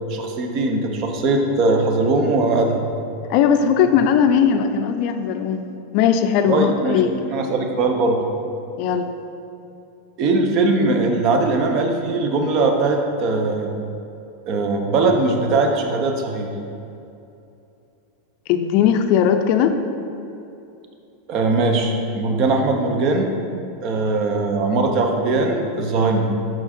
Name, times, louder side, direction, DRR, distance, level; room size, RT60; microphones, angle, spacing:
voice 1, 0.1-2.8 6.5-8.2 10.2-13.7 14.5-16.5 21.3-23.4 23.8-26.2, right 3 dB, 45° right, 3 dB, 0.8 m, -20 dB
voice 2, 3.3-5.6 5.9-7.1 8.8-9.1 18.5-19.8, left 8 dB, 55° left, 8 dB, 0.4 m, -18 dB
6.0 x 4.6 x 4.4 m, 2.7 s
supercardioid pair, 125°, 0 cm